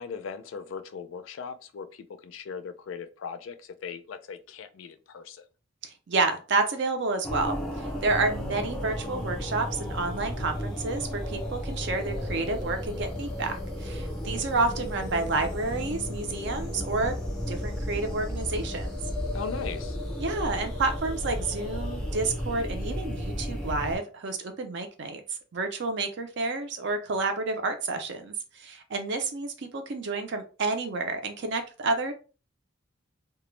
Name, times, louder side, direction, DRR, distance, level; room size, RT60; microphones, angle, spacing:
voice 1, 0.0-5.4 19.3-20.0, left 6 dB, 70° left, 0.3 m, -39 dB
voice 2, 5.8-17.2 17.5-19.0 20.2-25.2 25.5-32.1, right 3 dB, 60° right, 0.5 m, -30 dB
sound 1, 7.2-24.0, equal, ahead, 0.5 m, -33 dB
2.2 x 2.1 x 3.1 m
head